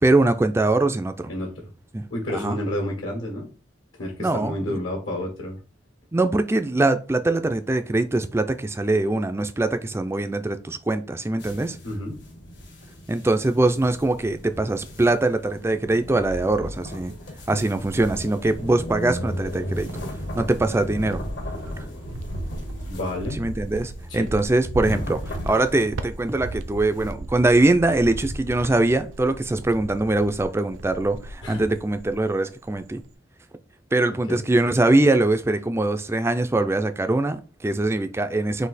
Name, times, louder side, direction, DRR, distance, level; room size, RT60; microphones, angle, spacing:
voice 1, 0.0-1.3 1.9-2.0 2.3-2.6 4.2-4.8 6.1-11.8 13.1-17.1 17.5-19.9 20.3-21.2 21.8-21.9 23.3-33.0 33.9-38.7, right 2 dB, 15° right, 0.3 m, -22 dB
voice 2, 1.3-1.7 2.1-3.5 4.0-5.6 11.8-12.2 22.9-23.4 24.1-24.3 31.4-31.6 34.3-34.4, left 1 dB, 75° left, 1.6 m, -30 dB
sound 1, 11.4-27.1, equal, 60° left, 1.1 m, -36 dB
Cricket, 17.3-18.9 19.3-32.3 32.6-33.1, right 2 dB, 85° right, 0.6 m, -37 dB
4.1 x 2.8 x 4.1 m
head